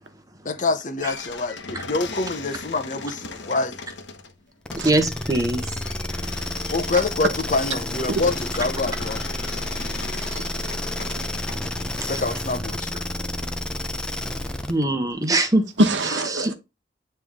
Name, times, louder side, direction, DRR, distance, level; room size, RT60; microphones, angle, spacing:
voice 1, 0.4-3.7 6.7-9.2 12.0-13.0, left 3 dB, 45° left, 0.9 m, -26 dB
sound 1, 1.0-12.0, left 4 dB, 70° left, 1.1 m, -39 dB
sound 2, 4.7-14.8, left 1 dB, 5° left, 0.7 m, -30 dB
voice 2, 4.8-5.7 12.0-12.1 14.7-15.7 16.3-16.5, right 2 dB, 20° right, 1.1 m, -22 dB
voice 3, 6.4-7.0 8.1-8.2 10.1-11.2 13.6-13.8 14.1-14.4 15.8-16.5, right 1 dB, 80° right, 1.1 m, -27 dB
9.0 x 3.4 x 3.6 m
head